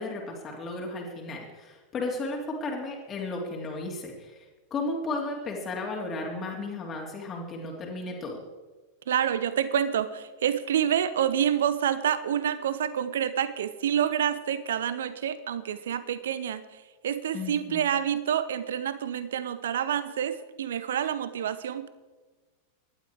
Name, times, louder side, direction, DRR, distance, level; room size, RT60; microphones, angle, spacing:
voice 1, 0.0-4.4 4.7-8.4 17.3-17.8, left 2 dB, 25° left, -1 dB, 2.9 m, -34 dB
voice 2, 9.1-21.9, right 9 dB, 60° right, 14 dB, 1.0 m, -28 dB
18.0 x 12.0 x 4.8 m, 1.3 s
figure-of-eight pair, 90°, 0 cm